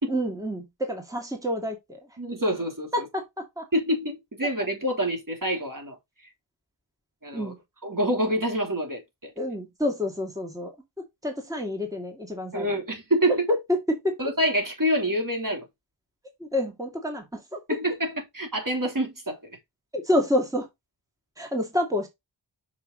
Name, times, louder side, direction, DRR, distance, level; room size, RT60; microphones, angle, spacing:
voice 1, 0.1-2.2 2.9-3.7 7.3-7.6 9.4-10.8 11.2-12.8 13.3-14.2 16.4-17.8 19.9-20.7 21.4-22.1, left 1 dB, 10° right, 2.2 m, -28 dB
voice 2, 2.2-3.0 3.7-6.3 7.2-7.5 7.8-9.3 12.5-13.4 14.2-15.6 17.7-19.6, equal, 45° right, 3.3 m, -27 dB
5.9 x 5.7 x 3.9 m
wide cardioid pair, 50°, 44 cm